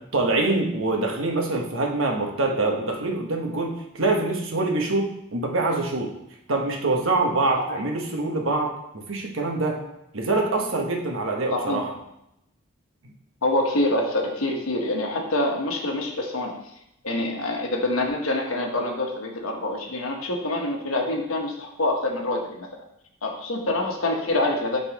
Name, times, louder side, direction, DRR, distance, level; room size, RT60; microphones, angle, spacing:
voice 1, 0.1-6.1 6.5-9.8 10.1-11.9, right 2 dB, 70° right, 1 dB, 1.2 m, -25 dB
voice 2, 11.5-11.8 13.4-16.6 17.0-22.7 23.2-24.8, left 2 dB, 80° left, 1 dB, 1.2 m, -26 dB
11.5 x 4.0 x 3.0 m, 0.83 s
head